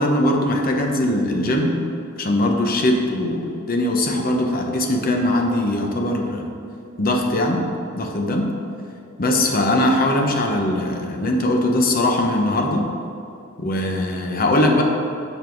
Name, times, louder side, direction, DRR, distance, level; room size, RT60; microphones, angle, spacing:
voice 1, 0.0-1.8 2.2-6.5 7.0-7.6 8.0-8.5 9.2-12.8 13.6-14.8, left 1 dB, 45° left, 2 dB, 0.8 m, -20 dB
7.3 x 5.4 x 4.6 m, 2.6 s
head